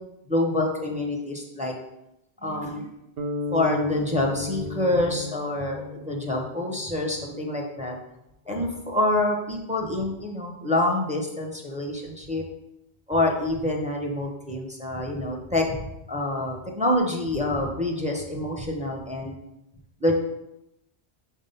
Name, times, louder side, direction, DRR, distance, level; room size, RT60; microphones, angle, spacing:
voice 1, 0.3-1.7 2.4-2.9 3.5-8.0 8.5-12.4 13.1-15.8 16.1-19.3 20.0-20.1, left 1 dB, 5° right, 0 dB, 0.7 m, -26 dB
sound 1, 3.2-7.4, left 4 dB, 60° right, 0.9 m, -34 dB
5.1 x 3.6 x 5.5 m, 0.86 s
omnidirectional pair, 1.2 m